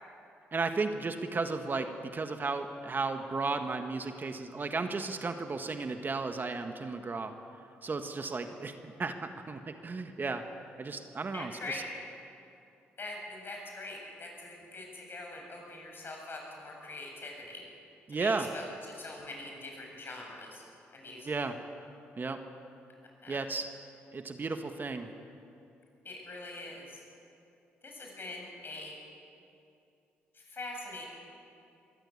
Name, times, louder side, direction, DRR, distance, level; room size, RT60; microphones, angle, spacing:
voice 1, 0.5-7.3 7.8-10.5 10.8-11.8 18.1-18.5 21.2-21.6 22.2-22.4 23.3-23.7 24.1-25.1, right 3 dB, 40° right, 6 dB, 1.6 m, -34 dB
voice 2, 11.3-11.9 13.0-17.6 18.1-20.6 20.9-21.3 23.2-23.4 26.0-27.0 27.8-29.0 30.3-31.1, left 2 dB, 45° left, 0 dB, 7.7 m, -43 dB
22.0 x 16.0 x 8.6 m, 2.6 s
supercardioid pair, 55°, 5 cm